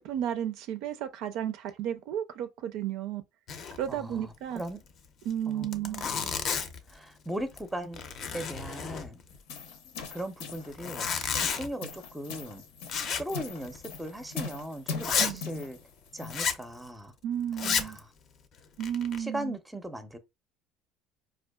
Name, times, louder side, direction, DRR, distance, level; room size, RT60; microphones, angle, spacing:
voice 1, 0.0-3.2 3.8-4.6 5.3-6.0 15.2-15.4 17.2-18.0 18.8-19.6, right 10 dB, 70° right, 0.4 m, -33 dB
Zipper (clothing), 3.5-3.9 4.1-4.2 4.6-4.7 5.3-5.4 5.6-6.9 7.4-7.7 7.9-9.4 10.7-11.7 12.9-13.4 13.7-13.8 14.3-14.4 15.0-15.4 16.3-16.6 17.5-18.0 18.6-19.2, left 6 dB, 45° left, 0.5 m, -31 dB
voice 2, 3.9-4.8 5.5-6.5 6.9-8.0 8.3-9.2 10.1-11.1 11.3-12.6 13.2-15.8 16.1-17.1 17.6-18.1 19.2-20.2, right 1 dB, 5° right, 0.5 m, -38 dB
sound 1, 9.3-16.5, left 4 dB, 85° left, 0.7 m, -41 dB
4.4 x 2.4 x 2.2 m
cardioid pair, 120°, 0 cm